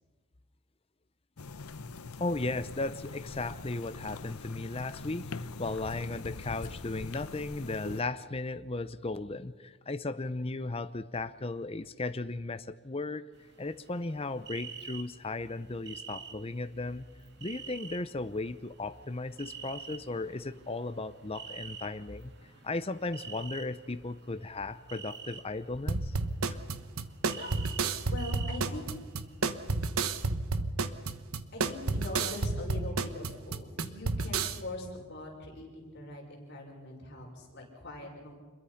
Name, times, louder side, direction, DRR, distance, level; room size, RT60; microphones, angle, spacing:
sound 1, 1.4-8.0, left 3 dB, 80° left, 0.9 m, -43 dB
voice 1, 2.2-13.2 13.6-17.0 17.4-22.3 22.6-26.2, left 2 dB, 25° left, 11 dB, 0.6 m, -36 dB
sound 2, 13.3-29.8, right 6 dB, 50° right, 2.6 m, -48 dB
sound 3, 25.9-34.6, right 3 dB, 75° right, 1.2 m, -31 dB
voice 2, 28.0-28.8 31.5-38.3, left 2 dB, 50° left, 0 dB, 5.8 m, -42 dB
27.0 x 21.5 x 5.8 m, 1.4 s
head